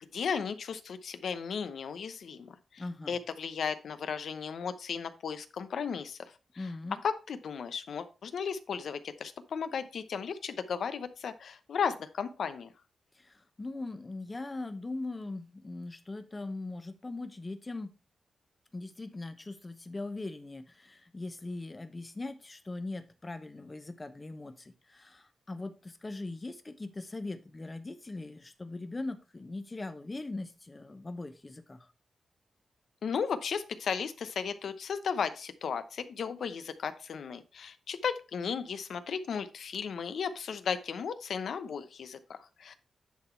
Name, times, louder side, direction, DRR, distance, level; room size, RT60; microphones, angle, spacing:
voice 1, 0.0-6.3 7.0-12.7 33.0-42.8, left 6 dB, 65° left, 11 dB, 0.9 m, -35 dB
voice 2, 2.8-3.2 6.6-7.0 13.1-17.9 18.7-31.9, left 2 dB, 20° left, 9 dB, 0.9 m, -40 dB
10.5 x 4.0 x 4.4 m, 0.32 s
wide cardioid pair, 145°, 0 cm